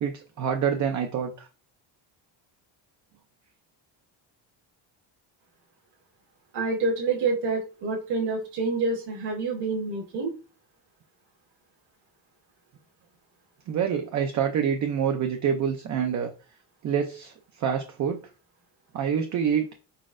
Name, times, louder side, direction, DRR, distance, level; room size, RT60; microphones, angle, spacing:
voice 1, 0.0-1.5 13.7-16.3 16.8-18.2 18.9-19.7, right 7 dB, 40° right, 5 dB, 0.4 m, -26 dB
voice 2, 6.5-10.3, right 3 dB, 55° right, -2 dB, 1.2 m, -27 dB
5.0 x 4.0 x 2.5 m, 0.35 s
cardioid pair, 165°, 47 cm